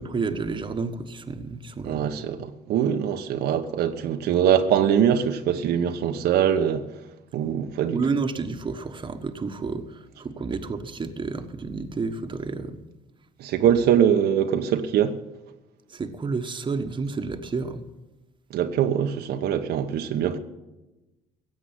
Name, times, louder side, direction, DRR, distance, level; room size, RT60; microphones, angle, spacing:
voice 1, 0.0-2.1 7.9-12.8 15.9-17.8, right 4 dB, 30° right, 1.4 m, -30 dB
voice 2, 1.8-6.8 7.3-8.0 13.4-15.1 18.5-20.4, right 9 dB, 75° right, 1.1 m, -23 dB
16.5 x 8.0 x 9.6 m
cardioid pair, 110°, 17 cm